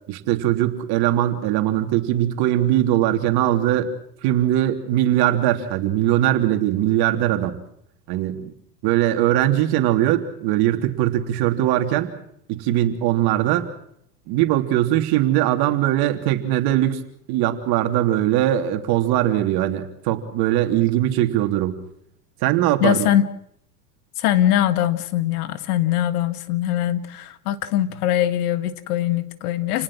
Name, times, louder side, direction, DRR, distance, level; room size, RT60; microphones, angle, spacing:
voice 1, 0.1-3.9 4.2-7.6 8.1-8.5 8.8-12.1 12.5-13.7 14.3-17.0 17.3-21.8 22.4-23.1, right 13 dB, 50° right, 6 dB, 3.3 m, -20 dB
voice 2, 22.8-23.3 24.2-29.8, left 12 dB, 70° left, 12 dB, 1.9 m, -22 dB
29.0 x 19.5 x 6.3 m, 0.70 s
hypercardioid pair, 100°, 47 cm